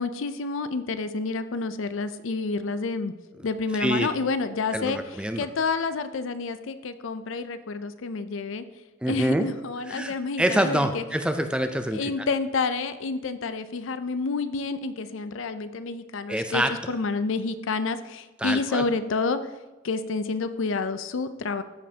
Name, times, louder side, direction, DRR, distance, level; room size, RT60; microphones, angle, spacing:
voice 1, 0.0-3.1 3.4-5.0 5.4-8.6 9.1-11.0 11.9-16.6 16.9-19.4 19.8-21.6, left 4 dB, 65° left, 11 dB, 0.5 m, -29 dB
voice 2, 3.7-4.1 4.7-5.5 9.0-9.5 9.9-12.3 16.3-16.9 18.4-18.9, right 1 dB, 5° right, 7 dB, 0.4 m, -26 dB
13.5 x 5.3 x 2.8 m, 1.2 s
head